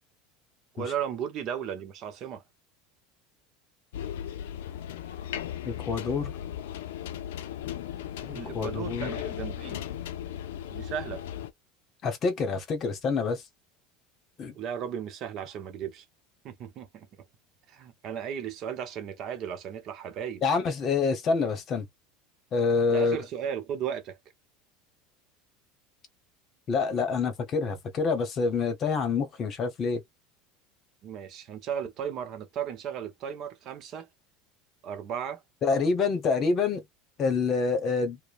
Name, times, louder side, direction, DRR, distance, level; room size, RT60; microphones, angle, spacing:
voice 1, 0.7-2.4 8.3-9.8 10.7-11.2 14.5-16.0 16.4-17.1 17.7-20.4 22.9-24.2 31.0-34.1 34.8-35.4, right 8 dB, 45° right, 0.8 m, -35 dB
sound 1, 3.9-11.5, left 10 dB, 90° left, 0.4 m, -36 dB
voice 2, 5.6-6.4 8.2-9.1 12.0-13.4 14.4-14.5 20.4-21.9 22.5-23.2 26.7-30.0 35.6-36.8 37.2-38.2, left 4 dB, 40° left, 1.0 m, -27 dB
2.9 x 2.1 x 2.4 m
supercardioid pair, 125°, 0 cm